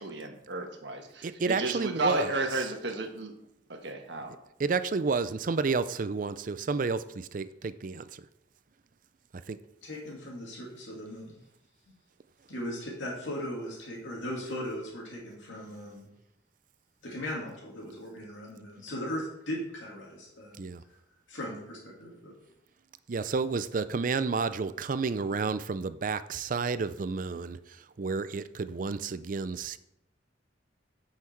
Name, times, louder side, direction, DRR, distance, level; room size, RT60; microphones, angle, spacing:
voice 1, 0.0-3.3 3.7-4.3, right 2 dB, 65° right, 4 dB, 1.4 m, -33 dB
voice 2, 1.2-2.7 4.6-8.3 9.5-9.6 20.6-20.8 23.1-29.8, right 4 dB, 45° right, 13 dB, 0.4 m, -31 dB
voice 3, 9.8-11.3 12.5-16.1 17.0-20.7 21.3-22.3, equal, 80° left, -3 dB, 2.5 m, -38 dB
8.7 x 5.8 x 4.6 m, 0.80 s
head